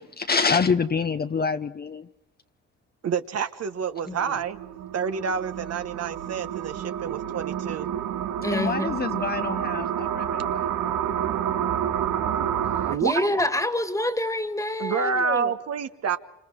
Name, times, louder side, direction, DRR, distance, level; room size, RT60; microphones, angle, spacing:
voice 1, 0.0-2.1 8.5-10.7, left 5 dB, 30° left, 9 dB, 0.8 m, -26 dB
voice 2, 3.0-4.6 4.9-7.9 12.9-13.1 14.8-16.2, right 6 dB, 55° right, 9 dB, 1.1 m, -28 dB
sound 1, 4.0-13.0, right 10 dB, 85° right, 1.4 m, -29 dB
voice 3, 4.1-4.4 8.4-8.9 13.0-15.5, left 1 dB, 10° left, 10 dB, 1.9 m, -27 dB
27.5 x 26.5 x 4.7 m, 0.91 s
cardioid pair, 90°, 30 cm